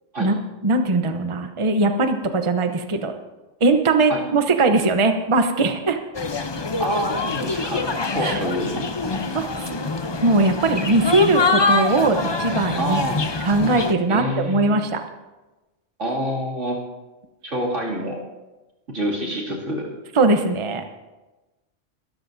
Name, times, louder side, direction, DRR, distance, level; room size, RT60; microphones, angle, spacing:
voice 1, 0.6-3.1 3.6-6.0 8.2-8.4 9.3-9.5 10.2-13.0 13.4-15.0 20.1-20.8, right 2 dB, 30° right, 6 dB, 0.8 m, -20 dB
sound 1, 6.1-13.9, left 3 dB, 30° left, 0.6 m, -25 dB
voice 2, 6.8-7.8 8.1-8.8 12.8-13.2 14.1-14.8 16.0-16.8 17.4-18.2 18.9-19.9, equal, 75° right, -3 dB, 2.9 m, -27 dB
23.0 x 13.5 x 2.7 m, 1.1 s
omnidirectional pair, 1.2 m